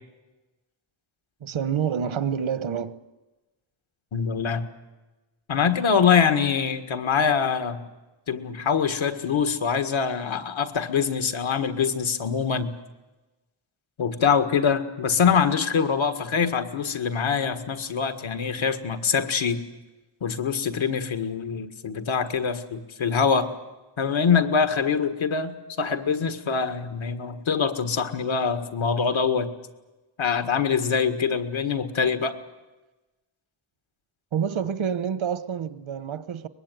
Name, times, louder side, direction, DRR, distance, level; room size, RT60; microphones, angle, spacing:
voice 1, 1.4-3.0 34.3-36.5, right 7 dB, 85° right, 1.2 m, -28 dB
voice 2, 4.1-4.7 5.5-7.9 8.3-12.7 14.0-19.6 20.2-23.5 24.0-29.5 30.2-32.4, left 6 dB, 85° left, 2.0 m, -24 dB
23.5 x 21.0 x 9.3 m
wide cardioid pair, 175°, 46 cm